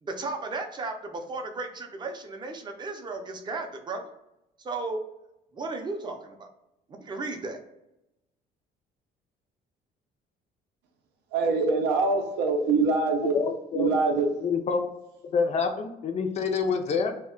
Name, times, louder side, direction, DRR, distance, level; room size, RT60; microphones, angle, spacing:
voice 1, 0.0-4.1 4.6-5.0 5.5-6.5 7.0-7.6, right 3 dB, 25° right, 4 dB, 0.5 m, -34 dB
voice 2, 11.3-13.4 13.7-14.3, right 3 dB, 85° right, 4 dB, 0.5 m, -24 dB
voice 3, 13.2-13.9 14.4-14.9 15.3-17.1, left 5 dB, 40° left, 6 dB, 0.4 m, -27 dB
2.1 x 2.1 x 3.6 m, 0.88 s
cardioid pair, 110°, 17 cm